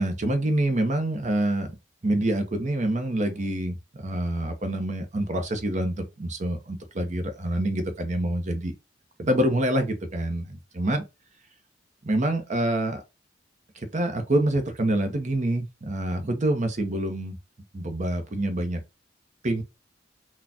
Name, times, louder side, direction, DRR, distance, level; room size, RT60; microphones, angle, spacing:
voice 1, 0.0-1.8 2.0-8.7 9.2-11.0 12.0-13.0 13.8-17.4 17.7-18.8 19.4-19.6, right 1 dB, 40° right, 0.8 m, -26 dB
4.1 x 2.3 x 2.8 m
head